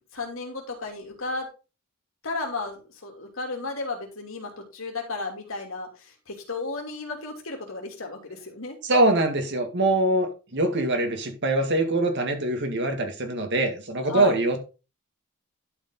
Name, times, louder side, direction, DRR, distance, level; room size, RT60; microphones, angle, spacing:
voice 1, 0.1-1.5 2.2-5.9 6.3-8.8 14.0-14.4, left 3 dB, 65° left, 1 dB, 2.9 m, -33 dB
voice 2, 8.8-14.6, right 2 dB, 55° right, 5 dB, 1.9 m, -23 dB
11.5 x 5.2 x 4.0 m, 0.31 s
head